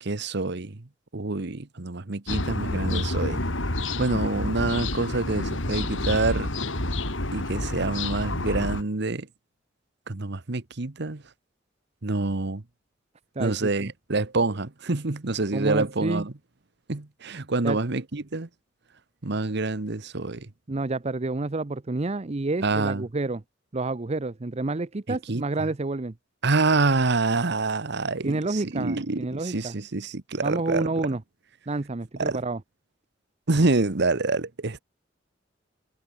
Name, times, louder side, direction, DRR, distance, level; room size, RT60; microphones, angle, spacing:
voice 1, 0.0-0.8 1.1-3.4 4.0-6.5 7.3-9.3 10.1-11.2 12.0-12.6 13.4-16.3 16.9-18.5 19.2-20.5 22.6-23.0 25.1-25.4 26.4-30.9 32.2-32.4 33.5-34.8, right 3 dB, 60° right, 1.2 m, -27 dB
sound 1, 2.3-8.8, left 2 dB, 85° left, 4.2 m, -29 dB
voice 2, 13.4-13.9 15.5-16.3 17.6-17.8 20.7-23.4 23.7-26.1 28.2-29.8 30.4-31.2 31.7-32.6, right 2 dB, 35° right, 0.7 m, -29 dB
head